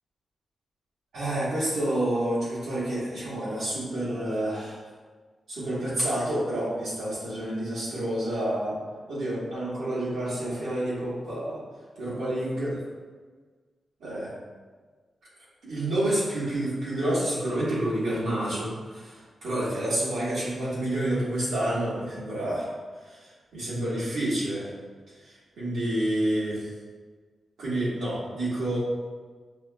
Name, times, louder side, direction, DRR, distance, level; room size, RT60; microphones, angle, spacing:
voice 1, 1.1-4.8 5.5-8.8 9.1-11.6 11.9-12.8 14.0-14.3 15.6-22.7 23.0-24.7 25.2-26.7 27.6-28.8, right 1 dB, 85° right, -8 dB, 1.5 m, -29 dB
5.8 x 2.1 x 2.2 m, 1.5 s
wide cardioid pair, 165°, 0 cm